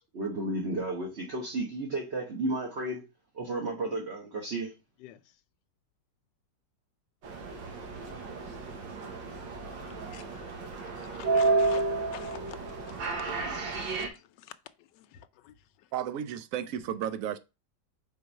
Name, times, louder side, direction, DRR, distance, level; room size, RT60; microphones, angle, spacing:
voice 1, 0.1-3.0 3.3-4.7, right 2 dB, 40° right, 1.3 m, -33 dB
sound 1, 7.2-14.1, right 3 dB, 90° right, 1.9 m, -31 dB
voice 2, 9.8-11.8 12.1-12.6 12.9-14.5 14.8-15.9, left 13 dB, 75° left, 1.2 m, -50 dB
voice 3, 15.9-17.4, right 10 dB, 70° right, 0.8 m, -33 dB
4.6 x 4.2 x 5.3 m
omnidirectional pair, 2.0 m